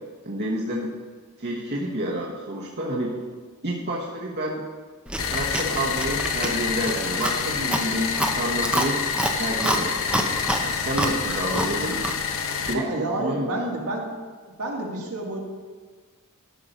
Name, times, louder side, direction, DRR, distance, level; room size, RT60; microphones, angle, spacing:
voice 1, 0.2-0.9 1.4-3.1 3.6-4.6 5.3-9.0 9.3-10.1 10.6-12.0 12.6-13.6, right 1 dB, 50° right, -3 dB, 1.3 m, -29 dB
Chewing mastication, 5.1-12.3, right 1 dB, 5° right, 0.8 m, -29 dB
sound 1, 5.2-12.7, left 6 dB, 65° left, 0.9 m, -27 dB
voice 2, 12.7-14.1 14.6-15.4, right 2 dB, 75° right, -1 dB, 2.0 m, -29 dB
13.0 x 5.8 x 5.3 m, 1.5 s
head